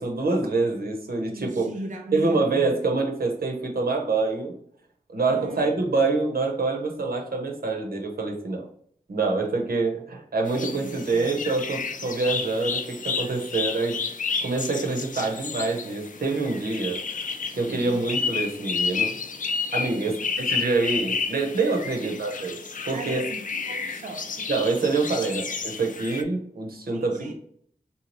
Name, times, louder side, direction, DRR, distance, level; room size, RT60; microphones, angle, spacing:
voice 1, 0.0-1.6 2.1-4.5 5.1-8.7 9.1-14.0 14.4-17.3 17.5-19.1 19.7-20.2 20.5-22.6 22.8-23.2 24.5-27.3, right 3 dB, 90° right, 0.8 m, -26 dB
voice 2, 1.2-2.8 5.3-5.8 10.7-11.4 17.6-17.9 20.0-20.3 21.9-22.2 22.9-24.5 26.9-27.3, right 2 dB, 60° right, 0.4 m, -38 dB
sound 1, 10.5-26.2, left 5 dB, 60° left, 0.4 m, -31 dB
3.5 x 2.7 x 2.9 m
wide cardioid pair, 70°, 15 cm